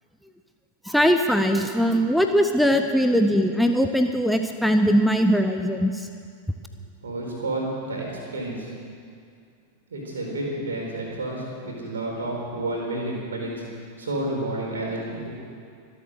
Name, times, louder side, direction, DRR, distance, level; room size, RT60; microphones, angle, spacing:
voice 1, 0.9-6.1, equal, ahead, 5 dB, 0.8 m, -21 dB
voice 2, 7.0-8.7 9.9-13.5 14.0-15.3, right 2 dB, 70° right, -1 dB, 4.4 m, -30 dB
24.5 x 8.2 x 6.5 m, 2.3 s
figure-of-eight pair, 90°, 0 cm